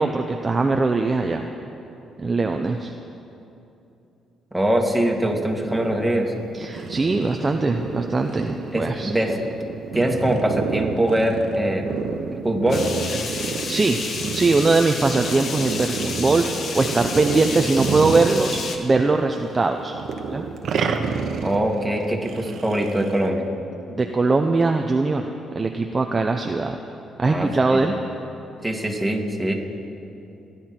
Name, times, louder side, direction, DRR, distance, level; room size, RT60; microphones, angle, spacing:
voice 1, 0.0-1.5 2.2-2.9 6.5-9.1 13.7-14.0 14.3-19.9 20.3-20.5 24.0-25.3 25.5-26.8 27.2-28.0, right 3 dB, 30° right, 4 dB, 0.7 m, -21 dB
voice 2, 4.5-6.3 8.7-9.4 9.9-11.9 12.4-12.8 21.4-23.5 27.3-27.8 28.6-29.5, right 1 dB, 10° right, 0 dB, 2.3 m, -22 dB
sound 1, 5.3-19.1 19.3-23.3, right 5 dB, 65° right, 1.2 m, -30 dB
sound 2, 12.7-18.8, left 4 dB, 60° left, 1.6 m, -31 dB
30.0 x 11.0 x 4.5 m, 2.8 s
cardioid pair, 90°, 0 cm